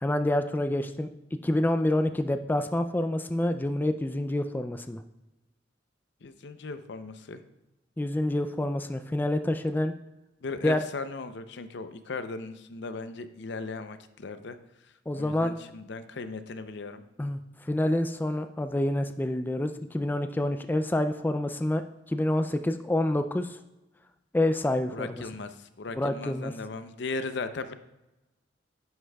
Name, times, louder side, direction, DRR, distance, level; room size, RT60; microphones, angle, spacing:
voice 1, 0.0-1.1 1.4-5.0 8.0-9.9 10.6-10.8 15.1-15.5 17.2-21.8 22.1-23.6 24.3-25.2 26.0-26.5, left 1 dB, 10° left, 8 dB, 0.3 m, -27 dB
voice 2, 6.2-7.4 10.4-14.6 14.8-17.0 24.9-27.7, left 3 dB, 70° left, 10 dB, 0.6 m, -37 dB
10.5 x 9.8 x 2.3 m, 0.97 s
head